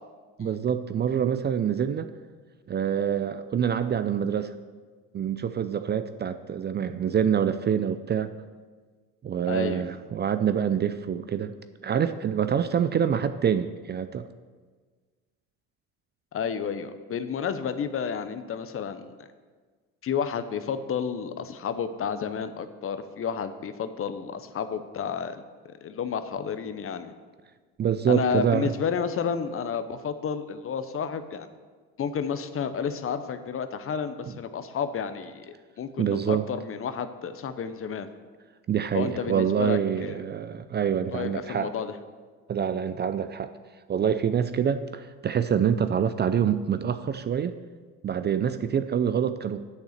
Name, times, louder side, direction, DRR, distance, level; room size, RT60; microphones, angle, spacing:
voice 1, 0.4-2.1 2.7-4.5 5.1-8.3 9.2-11.5 11.8-14.3 27.8-28.7 36.0-36.4 38.7-41.7 42.5-43.5 43.9-47.6 48.0-49.6, right 8 dB, 30° right, 11 dB, 0.4 m, -26 dB
voice 2, 9.5-9.8 16.3-19.1 20.0-27.1 28.1-31.5 32.0-38.1 38.9-40.2 41.1-41.9, left 7 dB, 40° left, 11 dB, 0.8 m, -31 dB
8.1 x 6.6 x 6.6 m, 1.5 s
supercardioid pair, 85°, 35 cm